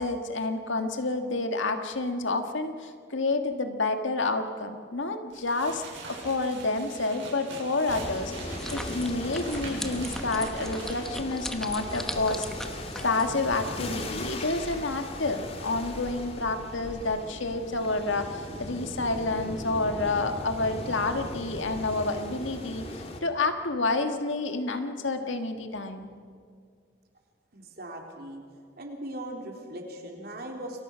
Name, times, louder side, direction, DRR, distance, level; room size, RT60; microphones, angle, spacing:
voice 1, 0.0-5.8 6.1-12.5 13.0-26.1, left 3 dB, 75° left, 6 dB, 1.8 m, -29 dB
sound 1, 5.3-11.3, right 3 dB, 75° right, 6.7 m, -43 dB
sound 2, 7.9-23.2, left 1 dB, 30° left, 2.3 m, -38 dB
sound 3, 8.6-13.6, equal, 5° left, 1.1 m, -39 dB
voice 2, 27.5-28.4 28.8-30.8, right 1 dB, 50° right, 1 dB, 3.7 m, -39 dB
28.5 x 23.0 x 6.3 m, 2.1 s
head